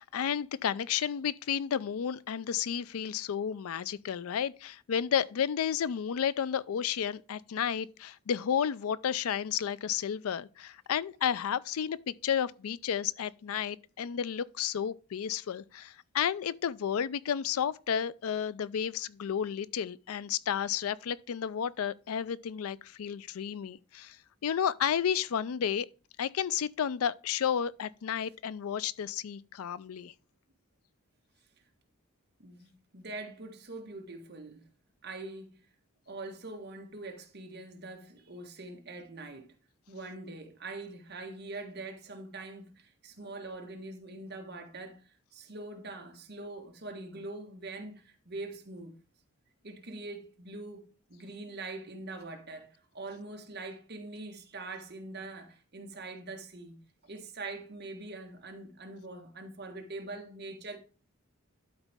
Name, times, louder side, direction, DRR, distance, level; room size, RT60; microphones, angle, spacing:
voice 1, 0.0-24.2 24.4-25.9 26.2-30.1, left 8 dB, 90° left, 0.4 m, -32 dB
voice 2, 32.4-34.7 35.0-35.6 36.1-39.6 39.9-49.0 49.6-60.8, right 2 dB, 50° right, 1.5 m, -43 dB
12.0 x 4.0 x 3.5 m
head